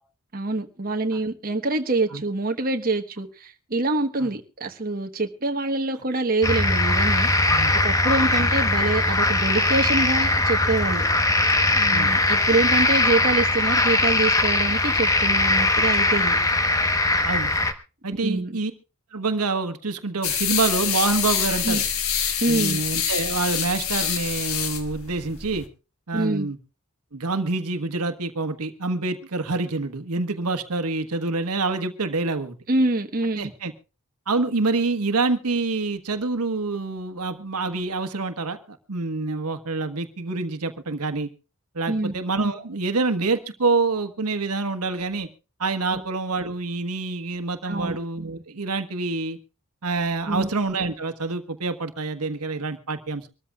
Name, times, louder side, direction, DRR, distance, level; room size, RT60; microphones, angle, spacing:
voice 1, 0.3-7.3 7.7-11.1 11.7-16.4 18.2-18.6 21.6-21.8 22.4-22.8 26.1-26.5 32.7-33.5 41.9-42.1 45.9-46.0 47.6-48.0 50.3-50.5, right 2 dB, 40° right, 1.2 m, -25 dB
sound 1, 6.4-17.7, left 2 dB, 15° left, 1.1 m, -20 dB
voice 2, 18.0-18.7 19.1-21.8 22.5-25.7 26.1-26.6 27.1-32.5 33.4-33.7 34.3-41.3 41.7-45.3 45.6-49.4 49.8-53.3, right 3 dB, 90° right, 1.3 m, -26 dB
sound 2, 20.2-25.6, left 8 dB, 65° left, 1.6 m, -26 dB
25.0 x 13.5 x 2.4 m
head